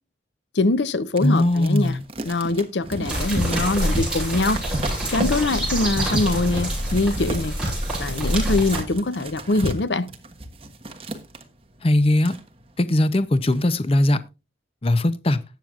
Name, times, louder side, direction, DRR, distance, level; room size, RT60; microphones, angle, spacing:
voice 1, 0.5-2.0 2.3-4.6 5.1-7.5 8.0-10.1, left 2 dB, 70° left, 0.7 m, -23 dB
voice 2, 1.2-2.0 11.8-12.4 12.8-14.2 14.8-15.4, left 1 dB, 30° left, 0.6 m, -20 dB
sound 1, 1.2-11.4 11.9-12.0 12.2-12.8 13.3-13.6, right 1 dB, 30° right, 1.3 m, -32 dB
sound 2, 3.1-8.8, right 1 dB, 5° right, 7.2 m, -26 dB
18.5 x 7.5 x 2.4 m
head